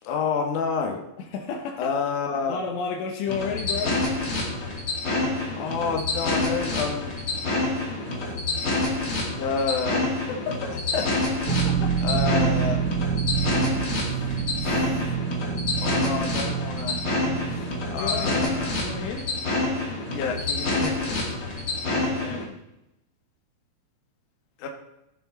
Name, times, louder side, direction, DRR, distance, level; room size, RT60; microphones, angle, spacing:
voice 1, 0.0-1.0 1.8-2.6 5.5-7.1 7.7-7.9 8.2-8.5 9.0-10.3 10.9-11.0 12.0-12.8 14.0-14.2 14.6-15.0 15.8-17.0 17.5-18.8 20.1-21.3 24.6-24.7, left 5 dB, 55° left, 2 dB, 2.7 m, -30 dB
voice 2, 1.2-1.9 2.5-4.0 10.3-10.8 11.5-12.0 17.9-19.4 21.9-22.6, left 6 dB, 75° left, 4 dB, 3.2 m, -32 dB
sound 1, 3.3-22.4, left 2 dB, 40° left, 2.2 m, -27 dB
sound 2, 11.5-19.1, right 8 dB, 70° right, 3.2 m, -28 dB
16.5 x 7.9 x 4.2 m, 0.88 s
omnidirectional pair, 5.3 m